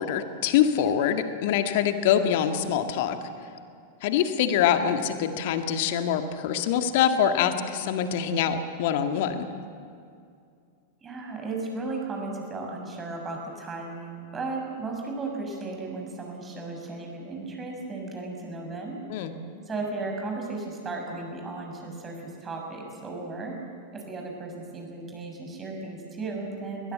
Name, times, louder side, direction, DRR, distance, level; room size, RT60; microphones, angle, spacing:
voice 1, 0.0-3.2 4.0-9.5 19.1-19.3, left 9 dB, 50° left, 7 dB, 1.9 m, -24 dB
voice 2, 11.0-19.0 19.7-23.6 23.9-26.9, right 3 dB, 20° right, 1 dB, 6.0 m, -35 dB
21.5 x 21.5 x 8.3 m, 2.4 s
figure-of-eight pair, 90°, 0 cm